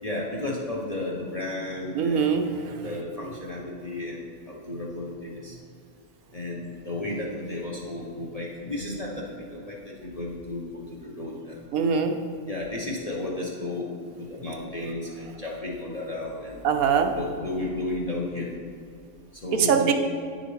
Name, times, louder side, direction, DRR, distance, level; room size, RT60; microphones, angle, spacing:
voice 1, 0.0-2.3 2.8-5.6 6.3-11.6 12.5-13.9 14.2-16.6 17.1-18.6 19.4-19.9, left 2 dB, 35° left, -3 dB, 0.7 m, -33 dB
voice 2, 1.9-2.8 11.7-12.2 16.6-17.1 19.5-19.9, right 6 dB, 75° right, 5 dB, 1.0 m, -22 dB
9.5 x 6.7 x 3.1 m, 2.2 s
omnidirectional pair, 1.6 m